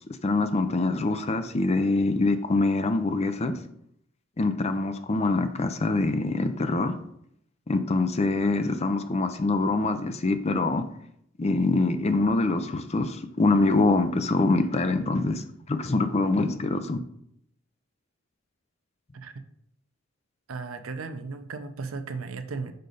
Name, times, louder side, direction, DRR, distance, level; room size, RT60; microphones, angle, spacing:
voice 1, 0.2-3.5 4.4-6.9 7.7-10.8 11.4-17.0, left 2 dB, 30° left, 9 dB, 0.5 m, -24 dB
voice 2, 20.5-22.7, right 4 dB, 85° right, 9 dB, 0.6 m, -35 dB
6.6 x 5.1 x 4.0 m, 0.72 s
head